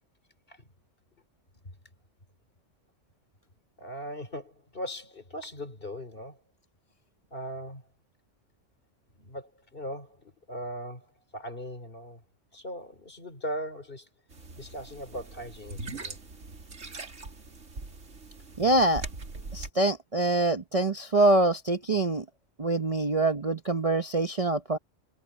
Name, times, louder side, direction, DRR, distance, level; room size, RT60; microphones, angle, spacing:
voice 1, 3.8-6.4 7.3-7.9 9.1-12.2 12.5-14.1 14.5-16.2, equal, 45° left, 3.4 m, -39 dB
sound 1, 14.3-19.7, right 3 dB, 80° right, 2.6 m, -41 dB
voice 2, 18.6-19.0 19.5-22.2 22.6-24.8, right 2 dB, 30° right, 0.8 m, -25 dB
omnidirectional pair, 1.3 m